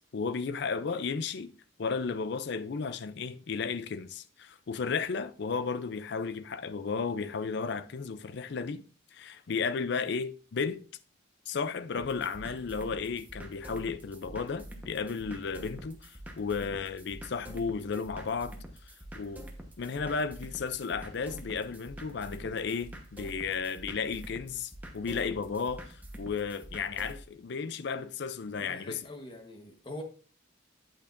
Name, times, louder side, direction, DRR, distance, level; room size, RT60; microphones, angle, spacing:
voice 1, 0.1-1.5 1.8-8.8 9.1-10.8 11.5-18.6 19.1-19.5 19.8-29.0, left 5 dB, 60° left, 0.4 m, -34 dB
sound 1, 12.0-27.2, right 1 dB, 10° right, 1.0 m, -46 dB
voice 2, 28.6-30.0, left 1 dB, 25° left, 1.2 m, -43 dB
8.5 x 8.4 x 2.5 m
head